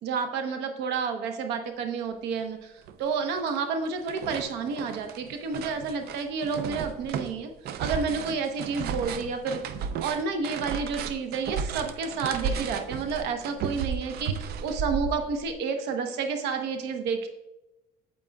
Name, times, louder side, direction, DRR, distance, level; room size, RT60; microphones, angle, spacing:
voice 1, 0.0-2.7 3.0-7.5 7.8-9.6 10.0-17.3, right 5 dB, 85° right, 6 dB, 1.0 m, -30 dB
sound 1, 2.4-2.5 2.9-3.6 3.8-15.5, right 6 dB, 70° right, 0.5 m, -34 dB
8.7 x 7.7 x 2.3 m, 0.99 s
cardioid pair, 110°, 17 cm